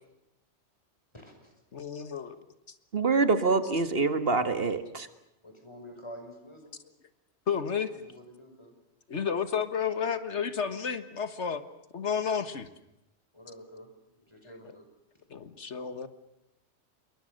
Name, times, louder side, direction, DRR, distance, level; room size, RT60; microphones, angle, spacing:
voice 1, 1.1-1.5 5.4-6.7 7.9-8.7 13.3-13.9 14.2-14.8, equal, 25° left, 4 dB, 5.9 m, -48 dB
voice 2, 1.7-2.4 7.5-7.9 9.1-11.6 11.9-12.7 14.6-14.8 15.3-16.1, left 7 dB, 90° left, 11 dB, 1.8 m, -31 dB
voice 3, 2.9-5.1, right 4 dB, 55° right, 10 dB, 1.9 m, -25 dB
28.0 x 23.0 x 6.7 m, 0.87 s
omnidirectional pair, 1.2 m